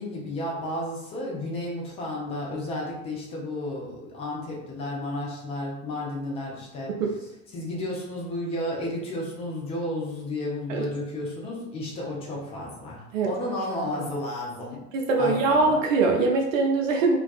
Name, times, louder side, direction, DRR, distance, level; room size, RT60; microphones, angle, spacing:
voice 1, 0.0-7.0 7.5-14.8 15.2-15.8, left 1 dB, 15° left, -3 dB, 0.4 m, -32 dB
voice 2, 14.9-17.2, right 3 dB, 60° right, 1 dB, 0.5 m, -22 dB
2.4 x 2.2 x 2.3 m, 0.89 s
figure-of-eight pair, 80°, 46 cm